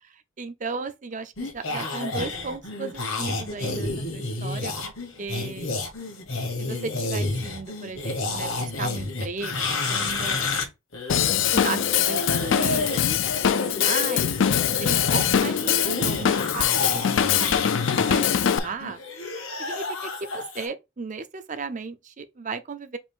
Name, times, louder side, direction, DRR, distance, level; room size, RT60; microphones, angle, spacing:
voice 1, 0.0-4.7 5.2-5.7 6.6-10.5 11.5-13.1 13.6-14.3 14.6-17.7 18.0-19.0 19.6-23.0, right 4 dB, 40° right, 0.5 m, -35 dB
sound 1, 1.4-10.6 10.9-20.7, left 3 dB, 85° left, 1.6 m, -30 dB
Drum kit / Drum, 11.1-18.6, left 9 dB, 65° left, 0.4 m, -23 dB
5.1 x 2.6 x 3.7 m
head